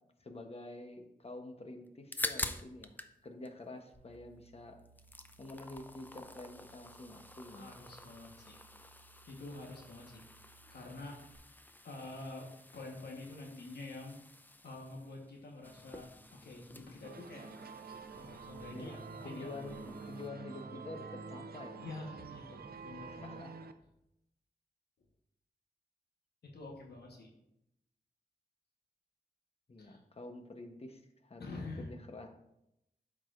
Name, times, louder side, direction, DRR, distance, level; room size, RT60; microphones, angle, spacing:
voice 1, 0.2-3.0 3.2-4.8 5.4-7.7 18.7-21.8 23.1-23.5 29.7-31.5 31.8-32.3, left 2 dB, 40° left, 5 dB, 0.9 m, -48 dB
sound 1, 1.9-3.2 3.4-4.5 4.8-20.3, left 1 dB, 10° left, 0.4 m, -47 dB
sound 2, 3.9-11.4, right 4 dB, 15° right, 1.3 m, -64 dB
voice 2, 7.5-8.6 9.3-10.2 10.7-11.2 11.8-17.5 18.2-19.5 21.8-23.4 26.4-27.3 29.8-30.0 31.4-31.9, left 2 dB, 85° left, -1 dB, 1.2 m, -47 dB
sound 3, 17.0-23.7, right 4 dB, 70° right, 0.5 m, -48 dB
12.0 x 4.8 x 2.5 m, 0.83 s
wide cardioid pair, 115°, 16 cm